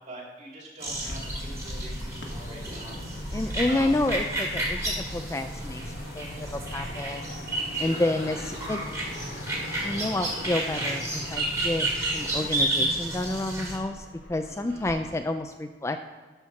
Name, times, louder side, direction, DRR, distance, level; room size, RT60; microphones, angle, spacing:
voice 1, 0.1-2.9 3.7-3.9 7.7-8.1 14.5-14.8, right 1 dB, 40° right, -3 dB, 2.7 m, -43 dB
sound 1, 0.8-13.8, right 1 dB, 15° right, 1.7 m, -31 dB
sound 2, 0.9-15.0, left 1 dB, 75° left, 1.3 m, -40 dB
voice 2, 3.3-7.3 7.8-8.8 9.8-16.0, left 2 dB, 15° left, 7 dB, 0.3 m, -30 dB
12.0 x 4.5 x 5.8 m, 1.4 s
head